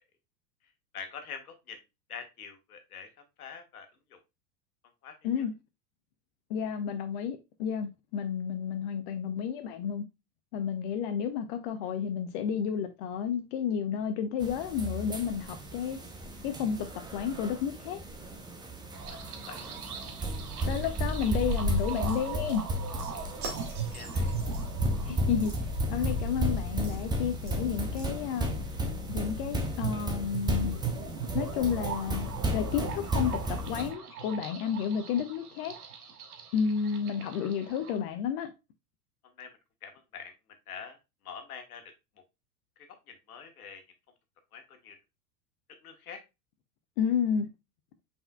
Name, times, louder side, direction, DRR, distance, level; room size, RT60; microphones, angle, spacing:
voice 1, 0.9-1.8 2.1-3.1 3.4-4.2 5.0-5.5 19.5-19.6 23.9-24.3 39.4-39.5 39.8-40.3 40.7-41.0 41.2-41.8 43.1-43.8 44.5-45.0 45.8-46.2, left 6 dB, 65° left, 1.3 m, -45 dB
voice 2, 6.5-10.0 10.5-16.0 16.4-18.0 20.7-22.6 25.1-28.5 29.1-30.8 31.3-35.8 36.5-38.5 47.0-47.5, left 7 dB, 40° left, 0.6 m, -31 dB
sound 1, 14.4-33.9, equal, 10° right, 0.7 m, -34 dB
sound 2, 18.9-38.0, right 7 dB, 65° right, 1.1 m, -41 dB
sound 3, 21.4-28.6, equal, 35° right, 1.7 m, -38 dB
5.4 x 4.3 x 2.2 m
figure-of-eight pair, 90°, 48 cm